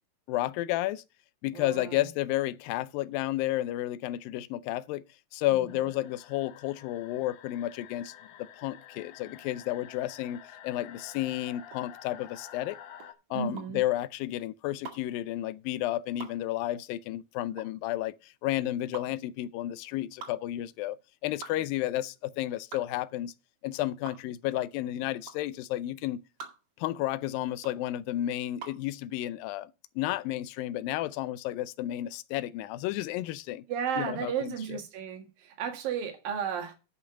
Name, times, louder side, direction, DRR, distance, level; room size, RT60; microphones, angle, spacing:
voice 1, 0.3-1.0 1.4-5.0 5.3-8.1 8.4-12.8 13.3-21.0 21.2-23.3 23.6-26.2 26.8-33.6 34.0-34.8, left 14 dB, 85° left, 2.4 m, -32 dB
voice 2, 1.5-2.0 5.5-5.9 13.3-13.8 33.7-36.7, right 7 dB, 80° right, 3.5 m, -34 dB
sound 1, 5.7-13.1, left 10 dB, 70° left, 2.3 m, -50 dB
sound 2, 11.6-28.9, right 6 dB, 45° right, 2.6 m, -48 dB
11.0 x 5.5 x 5.8 m
omnidirectional pair, 4.0 m